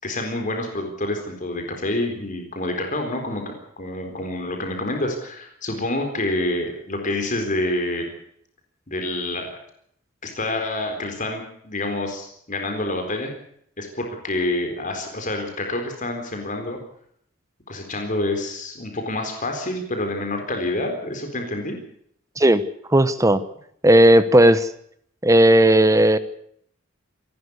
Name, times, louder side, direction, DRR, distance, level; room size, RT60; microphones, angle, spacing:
voice 1, 0.0-8.1 8.9-9.6 10.2-13.3 13.8-16.8 17.7-21.8, left 1 dB, 40° left, 4 dB, 4.1 m, -27 dB
voice 2, 22.9-23.4 23.8-24.7 25.2-26.2, right 1 dB, 15° right, 14 dB, 1.0 m, -14 dB
27.5 x 12.5 x 8.1 m, 0.68 s
head